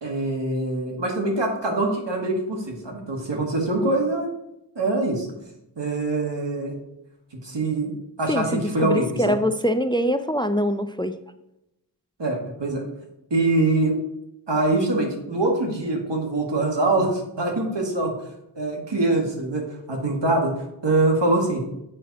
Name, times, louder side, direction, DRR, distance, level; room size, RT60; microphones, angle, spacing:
voice 1, 0.0-4.3 4.8-5.3 5.8-6.8 7.4-7.9 8.2-9.4 12.2-12.8 13.3-14.0 14.5-18.1 18.6-21.6, right 2 dB, 80° right, 1 dB, 1.8 m, -24 dB
voice 2, 8.3-11.2, equal, 10° left, 10 dB, 0.4 m, -23 dB
7.6 x 6.2 x 4.0 m, 0.86 s
wide cardioid pair, 50°, 42 cm